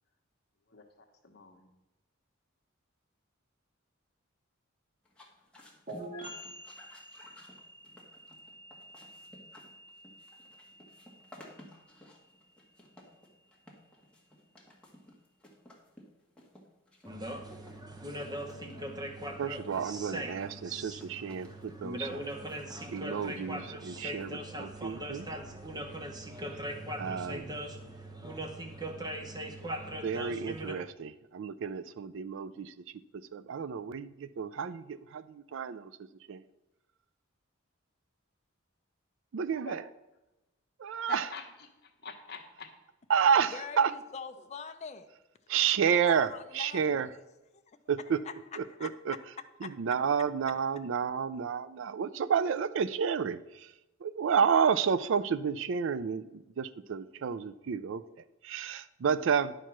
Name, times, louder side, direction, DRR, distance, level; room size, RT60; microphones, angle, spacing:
voice 1, 1.2-1.7 39.6-39.7 40.9-42.7, left 5 dB, 50° left, 3 dB, 1.2 m, -45 dB
sound 1, 5.0-24.9, left 1 dB, 5° left, 1.3 m, -56 dB
sound 2, 5.9-13.4, right 1 dB, 40° right, 2.4 m, -49 dB
sound 3, 17.1-30.8, right 1 dB, 20° right, 0.7 m, -40 dB
voice 2, 19.4-22.3 22.9-25.3 25.7-26.1 27.0-27.5 30.0-32.7 33.3-35.9 36.3-36.4 39.3-39.8 40.8-41.3 43.1-43.9 45.5-47.1 47.9-48.2 48.6-49.2 49.6-53.7 54.0-58.0 58.4-59.5, right 7 dB, 65° right, 15 dB, 0.4 m, -30 dB
voice 3, 43.5-45.1 46.1-47.0 47.5-47.8 48.7-48.9 49.6-49.7, left 5 dB, 35° left, 7 dB, 0.5 m, -43 dB
10.0 x 4.6 x 6.0 m, 0.99 s
head